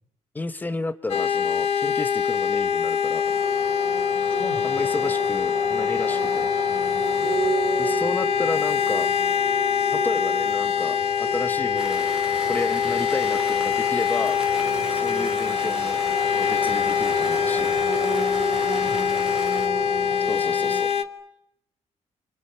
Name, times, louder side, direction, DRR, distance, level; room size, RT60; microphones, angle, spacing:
voice 1, 0.3-3.4 4.6-6.5 7.8-9.1 9.9-12.1 12.5-14.4 14.9-16.0 16.3-17.7 20.3-20.9, left 2 dB, 15° left, 12 dB, 1.0 m, -32 dB
sound 1, 1.1-21.0, left 8 dB, 60° left, 1.1 m, -24 dB
sound 2, 3.2-20.8, right 5 dB, 30° right, 2.3 m, -34 dB
voice 2, 4.3-4.9 7.2-8.0 11.4-11.8 18.7-19.4, left 4 dB, 35° left, 7 dB, 1.9 m, -40 dB
sound 3, 11.8-19.7, right 1 dB, 5° right, 2.4 m, -38 dB
30.0 x 28.5 x 5.6 m, 0.78 s
cardioid pair, 170°, 12 cm